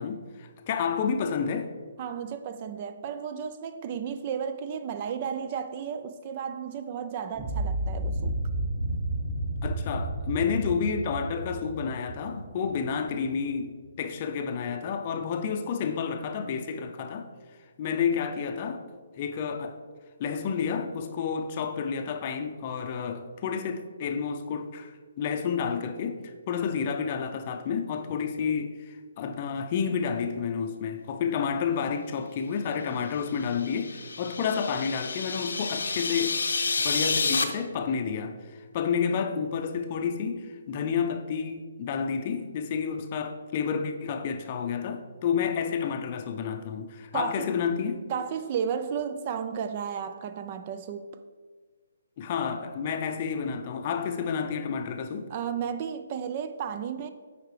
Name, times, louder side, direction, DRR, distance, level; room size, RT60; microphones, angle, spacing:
voice 1, 0.0-1.7 9.6-17.3 17.8-18.8 19.2-19.8 20.2-24.9 25.2-36.4 36.8-48.1 52.2-55.3, left 6 dB, 35° left, 0.5 m, -30 dB
voice 2, 2.0-8.4 47.1-47.5 48.1-51.2 55.3-57.1, right 7 dB, 35° right, 0.4 m, -33 dB
sound 1, 7.3-13.4, right 1 dB, 10° right, 1.2 m, -32 dB
sound 2, 33.3-37.4, left 4 dB, 80° left, 0.7 m, -29 dB
8.0 x 4.8 x 3.3 m
hypercardioid pair, 150°, 0 cm